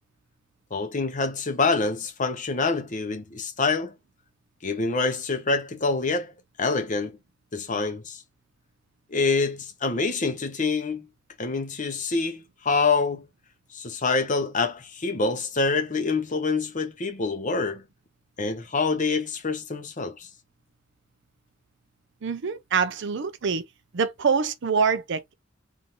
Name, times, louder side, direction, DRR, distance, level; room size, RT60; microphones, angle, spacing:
voice 1, 0.7-3.9 4.6-6.3 6.6-7.2 7.5-8.2 9.1-11.1 11.4-13.3 13.7-17.8 18.4-20.3, left 4 dB, 40° left, 0.9 m, -26 dB
voice 2, 22.2-23.6 23.9-25.3, right 5 dB, 65° right, 0.6 m, -25 dB
3.7 x 2.7 x 2.9 m
head